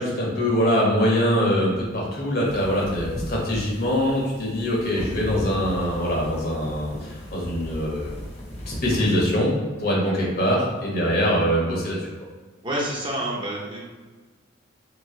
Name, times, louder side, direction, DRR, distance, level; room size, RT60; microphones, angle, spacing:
voice 1, 0.0-8.1 8.7-9.5 9.8-12.1, equal, 50° left, -3 dB, 1.2 m, -23 dB
sound 1, 2.4-9.2, equal, 30° left, 1.0 m, -36 dB
voice 2, 9.8-10.2 12.6-13.8, right 1 dB, 25° right, -4 dB, 0.9 m, -29 dB
3.7 x 3.1 x 3.7 m, 1.3 s
head